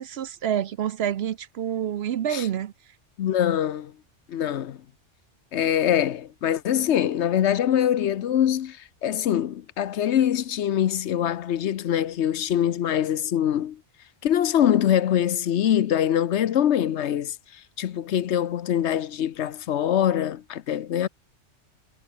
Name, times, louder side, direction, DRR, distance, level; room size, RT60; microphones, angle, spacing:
voice 1, 0.0-2.7, right 9 dB, 65° right, 0.8 m, -28 dB
voice 2, 3.2-3.9 4.3-4.8 5.5-13.8 14.2-21.1, left 10 dB, 70° left, 1.0 m, -24 dB
omnidirectional pair, 1.3 m